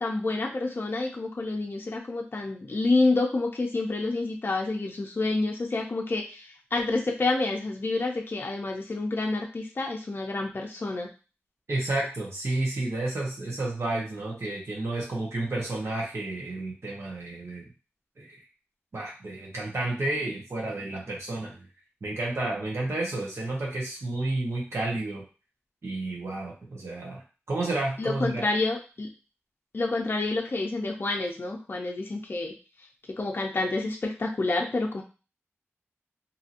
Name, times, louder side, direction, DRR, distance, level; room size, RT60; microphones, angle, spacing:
voice 1, 0.0-11.1 28.0-29.1 29.7-32.5 33.1-35.0, left 2 dB, 45° left, 0 dB, 0.5 m, -28 dB
voice 2, 11.7-17.7 18.2-18.3 18.9-21.7 22.0-25.2 25.8-27.2 27.5-28.4, right 2 dB, 65° right, -3 dB, 0.8 m, -31 dB
2.8 x 2.7 x 2.5 m, 0.33 s
wide cardioid pair, 90°, 5 cm